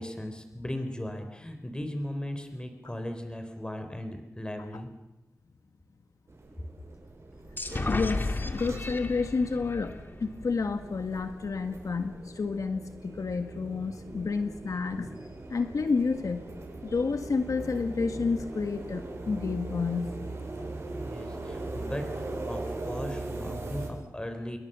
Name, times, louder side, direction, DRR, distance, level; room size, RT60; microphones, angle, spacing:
voice 1, 0.0-4.9 20.9-24.6, left 1 dB, 15° left, 6 dB, 4.2 m, -37 dB
sound 1, 6.3-23.9, right 2 dB, 55° right, 7.4 m, -40 dB
sound 2, 7.6-11.2, left 2 dB, 35° left, 2.1 m, -34 dB
voice 2, 7.9-15.2 15.5-16.5 16.8-20.2, left 4 dB, 75° left, 7 dB, 1.7 m, -30 dB
28.0 x 22.5 x 6.9 m, 1.0 s
wide cardioid pair, 105°, 6 cm